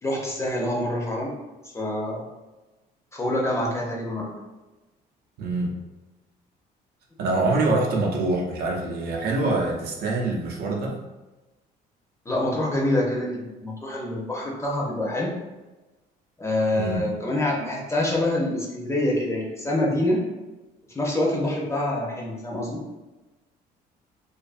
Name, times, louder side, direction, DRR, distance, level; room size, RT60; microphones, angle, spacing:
voice 1, 0.0-1.3 1.7-2.2 3.1-4.3 12.3-15.3 16.4-20.2 20.9-22.8, left 1 dB, 15° left, -3 dB, 0.6 m, -26 dB
voice 2, 5.4-5.7 7.2-11.0 16.7-17.0, right 2 dB, 70° right, -1 dB, 0.6 m, -25 dB
2.5 x 2.4 x 2.4 m, 1.1 s
cardioid pair, 110°, 17 cm